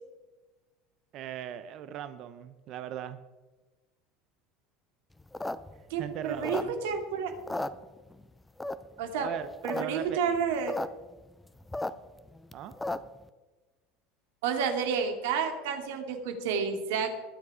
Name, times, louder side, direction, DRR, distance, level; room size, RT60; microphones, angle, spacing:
voice 1, 1.1-3.2 6.0-6.7 9.2-10.2 12.5-12.7, right 9 dB, 35° right, 10 dB, 0.6 m, -38 dB
sound 1, 5.2-7.0 7.3-8.2 8.6-9.0 9.4-9.8 10.1-10.2 10.3-10.9 11.2-13.2, left 2 dB, 5° left, 0.4 m, -34 dB
voice 2, 5.9-7.3 9.0-9.3 9.6-10.7 14.4-17.1, right 6 dB, 90° right, 5 dB, 2.5 m, -30 dB
21.0 x 7.4 x 4.9 m, 1.2 s
cardioid pair, 175°, 0 cm